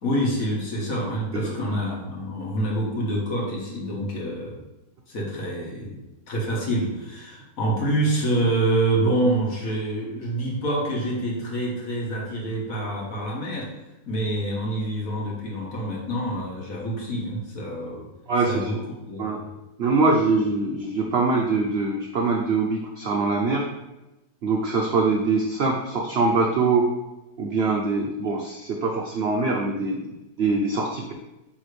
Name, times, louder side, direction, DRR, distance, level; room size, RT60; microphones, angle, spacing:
voice 1, 0.0-4.6 5.1-6.0 6.3-13.7 14.1-18.1 18.5-19.5, right 1 dB, 55° left, -2 dB, 1.7 m, -26 dB
voice 2, 18.3-18.6 19.2-19.4 19.8-23.6 24.4-26.9 27.4-30.0 30.4-31.1, right 3 dB, 70° right, 0 dB, 0.6 m, -23 dB
8.8 x 3.4 x 3.3 m, 1.0 s
omnidirectional pair, 1.9 m